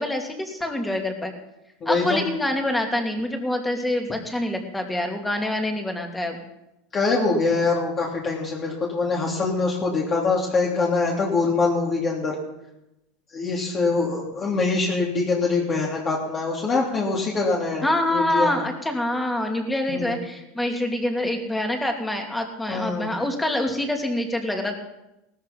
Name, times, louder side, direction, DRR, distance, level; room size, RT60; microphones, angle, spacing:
voice 1, 0.0-1.3 1.8-6.4 17.8-24.7, left 1 dB, 5° left, 3 dB, 2.8 m, -26 dB
voice 2, 1.8-2.2 6.9-12.4 13.3-17.8 18.1-18.5 19.9-20.2 22.7-23.1, left 3 dB, 30° left, -2 dB, 3.3 m, -24 dB
18.0 x 13.5 x 5.5 m, 0.91 s
supercardioid pair, 125°, 0 cm